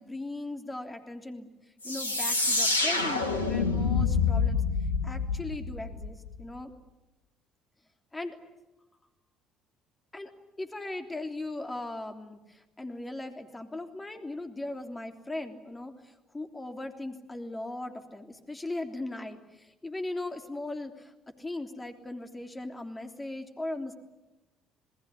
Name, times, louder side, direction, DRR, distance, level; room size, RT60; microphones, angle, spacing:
voice 1, 0.0-1.5 1.8-4.6 5.0-6.7 8.1-8.4 10.1-10.3 10.6-21.1 21.4-23.9, left 2 dB, 15° left, 6 dB, 3.3 m, -38 dB
sound 1, 1.8-6.4, left 4 dB, 90° left, 1.5 m, -27 dB
28.5 x 20.0 x 9.6 m, 1.0 s
figure-of-eight pair, 50°, 0 cm